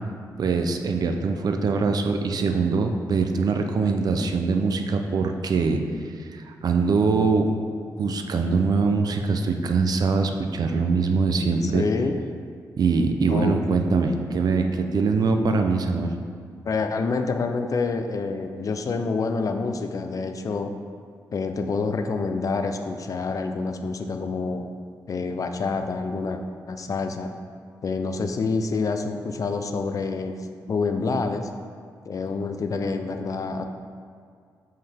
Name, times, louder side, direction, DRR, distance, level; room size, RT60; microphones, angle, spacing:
voice 1, 0.4-5.8 6.1-7.5 8.0-11.8 12.8-16.1, right 4 dB, 65° right, 5 dB, 0.6 m, -23 dB
voice 2, 11.6-12.2 13.3-14.0 16.7-20.7 21.3-24.7 25.1-27.3 27.8-30.3 30.7-31.5 32.1-33.6, left 4 dB, 50° left, 7 dB, 0.5 m, -27 dB
7.8 x 5.5 x 3.5 m, 2.2 s
cardioid pair, 100°, 7 cm